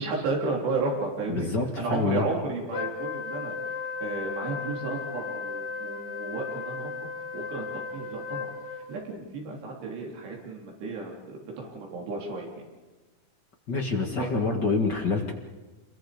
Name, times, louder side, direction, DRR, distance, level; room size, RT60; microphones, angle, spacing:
voice 1, 0.0-1.5 1.8-3.6 4.0-6.9 7.3-8.5 8.9-12.6 14.2-14.3, right 3 dB, 80° right, -1 dB, 5.7 m, -33 dB
voice 2, 1.3-2.2 13.7-15.3, left 3 dB, 45° left, 2 dB, 1.5 m, -26 dB
Wind instrument woodwind instrument, 2.7-9.0, left 5 dB, 65° left, 2.7 m, -35 dB
27.5 x 23.0 x 5.1 m, 1.2 s
omnidirectional pair, 4.8 m